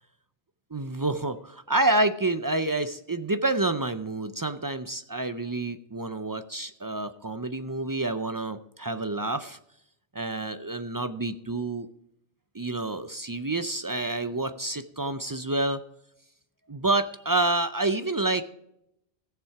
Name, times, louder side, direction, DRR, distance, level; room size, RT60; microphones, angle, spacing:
voice 1, 0.7-9.6 10.1-11.9 12.5-15.8 16.7-18.4, right 2 dB, 35° right, 10 dB, 0.3 m, -28 dB
15.5 x 7.2 x 4.8 m, 0.78 s
omnidirectional pair, 1.1 m